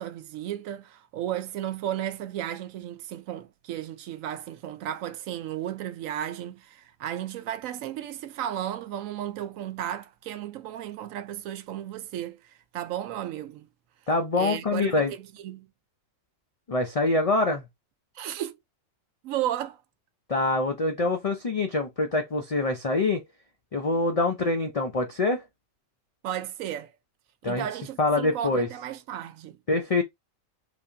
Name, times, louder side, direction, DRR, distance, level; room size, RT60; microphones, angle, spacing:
voice 1, 0.0-13.7 14.3-15.7 18.1-18.6 19.2-19.8 26.2-26.9 27.4-29.6, right 11 dB, 80° right, 1.0 m, -34 dB
voice 2, 14.1-15.1 16.7-17.6 20.3-23.2 23.7-25.4 27.4-27.7 28.0-28.7 29.7-30.0, left 2 dB, 65° left, 0.3 m, -25 dB
3.4 x 2.7 x 3.4 m
omnidirectional pair, 1.4 m